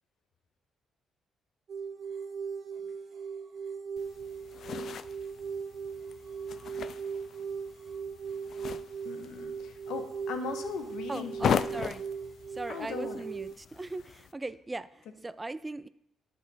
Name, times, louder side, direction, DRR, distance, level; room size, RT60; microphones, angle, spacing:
sound 1, 1.7-13.5, right 6 dB, 55° right, 0.9 m, -39 dB
sound 2, 4.0-14.3, left 8 dB, 60° left, 0.3 m, -38 dB
voice 1, 9.0-11.6 12.7-13.3, left 5 dB, 80° left, 6 dB, 0.9 m, -39 dB
voice 2, 11.1-12.0 12.5-15.9, right 2 dB, 20° right, 15 dB, 0.4 m, -39 dB
11.5 x 4.3 x 4.0 m, 0.76 s
cardioid pair, 90°, 0 cm